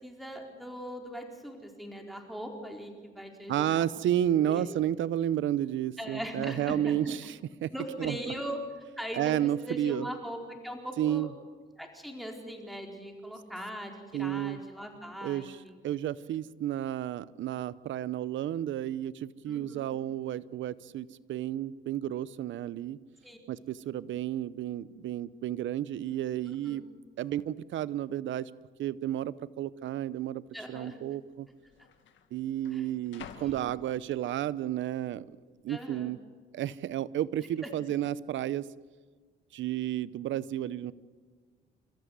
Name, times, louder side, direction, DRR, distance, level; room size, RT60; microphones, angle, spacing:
voice 1, 0.0-3.9 4.3-4.7 6.0-7.2 7.7-8.6 9.0-11.3 11.8-15.8 19.5-19.9 23.2-23.4 26.5-26.8 30.5-31.0 32.7-32.9 33.4-33.6 35.7-36.1 37.6-37.7, equal, ahead, 2 dB, 4.3 m, -40 dB
voice 2, 3.5-7.7 8.0-8.2 9.1-10.1 11.0-11.3 14.1-14.6 15.2-15.6 15.8-23.0 23.5-26.8 27.2-28.5 28.8-30.4 30.7-31.5 32.3-35.3 35.6-36.2 36.5-38.6 39.5-40.9, right 11 dB, 70° right, 18 dB, 0.8 m, -32 dB
sound 1, 25.7-25.8 26.1-26.5 27.2-27.3 28.0-28.6 28.8-29.0 29.8-30.0 31.0-31.1 31.3-34.5 35.0-35.4, left 8 dB, 75° left, 2.1 m, -53 dB
29.0 x 14.0 x 9.5 m, 1.5 s
cardioid pair, 90°, 20 cm